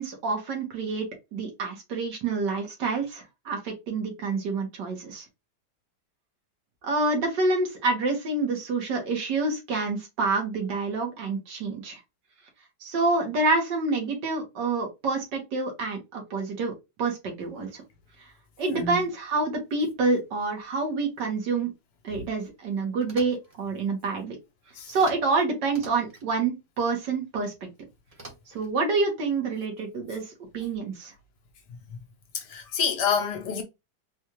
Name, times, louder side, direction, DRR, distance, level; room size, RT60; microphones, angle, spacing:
voice 1, 0.0-5.2 6.8-12.0 12.8-16.7 17.0-17.8 18.2-18.3 18.6-21.7 22.0-24.4 24.9-27.7 28.5-31.1, right 3 dB, 75° right, 1.9 m, -27 dB
voice 2, 18.7-19.0 24.7-24.9 32.3-33.6, left 6 dB, 75° left, 1.4 m, -28 dB
sound 1, 23.0-23.6 24.9-25.4 25.6-26.3 28.1-28.7, right 2 dB, 25° right, 1.0 m, -46 dB
4.3 x 2.4 x 2.9 m
omnidirectional pair, 1.9 m